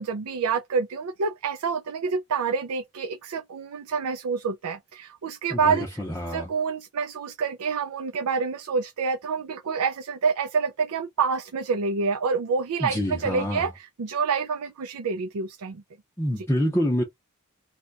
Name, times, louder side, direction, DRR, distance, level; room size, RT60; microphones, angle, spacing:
voice 1, 0.0-6.0 6.3-15.8 16.3-16.5, right 5 dB, 85° right, 0.4 m, -27 dB
voice 2, 5.5-6.5 12.8-13.7 16.2-17.0, equal, 10° left, 0.6 m, -27 dB
2.8 x 2.3 x 3.9 m
head